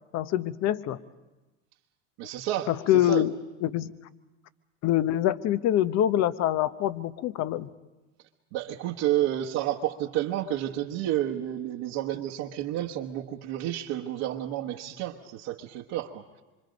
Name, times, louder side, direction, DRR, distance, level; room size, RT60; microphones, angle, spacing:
voice 1, 0.1-1.0 2.7-3.9 4.8-7.7, left 12 dB, 45° left, 15 dB, 0.9 m, -25 dB
voice 2, 2.2-3.2 8.5-16.4, right 12 dB, 65° right, -2 dB, 1.4 m, -30 dB
26.0 x 24.5 x 5.2 m, 1.1 s
supercardioid pair, 105°, 36 cm